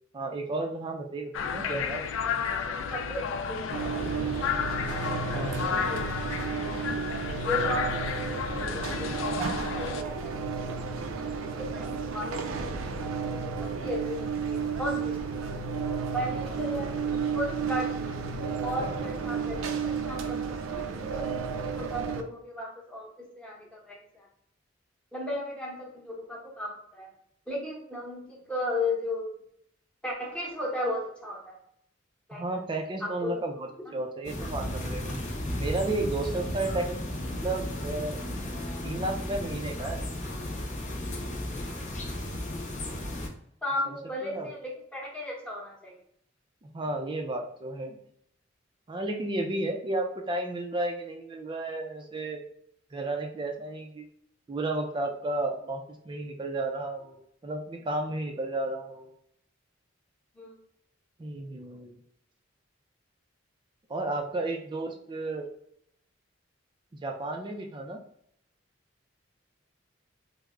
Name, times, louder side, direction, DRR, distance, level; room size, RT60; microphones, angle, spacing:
voice 1, 0.1-2.0 5.3-5.9 8.1-8.2 9.1-9.5 18.8-18.9 32.3-35.2 35.6-37.0 37.2-38.2 38.8-40.1 43.9-44.0 44.2-44.5 46.6-48.0 48.9-52.5 52.9-54.0 54.5-59.1 61.2-62.0 63.9-65.5 67.0-68.0, right 2 dB, 25° right, 3 dB, 0.4 m, -33 dB
sound 1, 1.3-10.0, left 7 dB, 70° left, 0.3 m, -32 dB
voice 2, 1.5-1.8 2.2-4.1 5.6-6.1 7.5-10.8 11.2-12.7 13.3-15.2 16.1-21.2 21.7-24.3 25.1-27.1 27.5-29.4 30.0-31.6 32.3-32.4 33.0-33.4 43.6-45.9 60.4-60.5, left 1 dB, 5° left, -2 dB, 0.8 m, -35 dB
sound 2, 3.7-22.2, right 5 dB, 85° right, 0.4 m, -32 dB
sound 3, 34.2-43.3, left 1 dB, 40° left, 0.7 m, -34 dB
3.3 x 2.0 x 3.5 m, 0.70 s
head